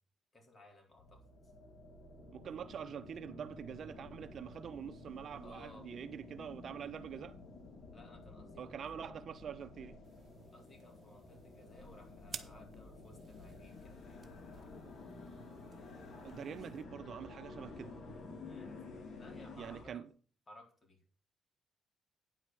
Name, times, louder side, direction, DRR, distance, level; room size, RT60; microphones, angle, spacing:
voice 1, 0.3-1.5 5.4-5.9 7.9-9.1 10.5-14.2 16.6-16.7 18.4-18.7 19.2-20.0 20.5-21.0, left 1 dB, 30° left, 3.8 m, -59 dB
sound 1, 0.9-19.9, left 3 dB, 50° left, 3.0 m, -52 dB
voice 2, 2.3-7.4 8.6-10.0 16.2-17.9 19.6-20.0, right 8 dB, 60° right, 0.6 m, -45 dB
sound 2, 10.0-16.8, right 6 dB, 45° right, 1.0 m, -55 dB
9.7 x 4.8 x 7.5 m
cardioid pair, 90°, 0 cm